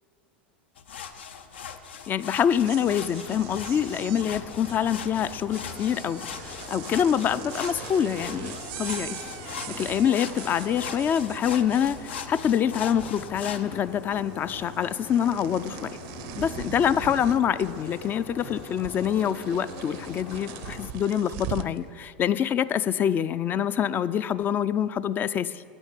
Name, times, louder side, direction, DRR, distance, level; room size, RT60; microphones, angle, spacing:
sound 1, 0.8-13.6, left 7 dB, 80° left, 0.6 m, -40 dB
voice 1, 2.1-9.2 9.4-15.9 16.4-25.6, left 9 dB, 35° left, 15 dB, 0.3 m, -26 dB
sound 2, 2.4-12.5 12.7-13.5 13.7-21.8, right 13 dB, 60° right, 0.5 m, -41 dB
sound 3, 3.3-20.9, left 5 dB, 60° left, 1.0 m, -43 dB
8.6 x 6.2 x 8.2 m, 2.1 s
hypercardioid pair, 95°, 6 cm